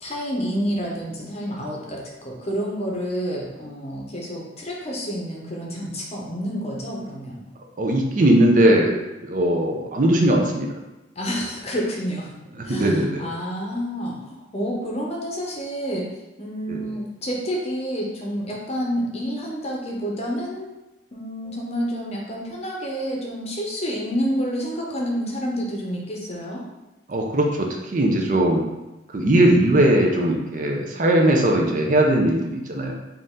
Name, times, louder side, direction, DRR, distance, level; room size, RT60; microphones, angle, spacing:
voice 1, 0.0-7.4 11.2-12.3 12.6-16.1 16.4-20.7 21.1-26.6, equal, 35° left, -2 dB, 0.7 m, -29 dB
voice 2, 7.8-8.9 9.2-10.7 12.7-13.2 16.7-16.8 27.1-28.6 29.1-32.9, right 1 dB, 45° right, 0 dB, 0.5 m, -19 dB
4.3 x 2.5 x 3.7 m, 1.0 s
head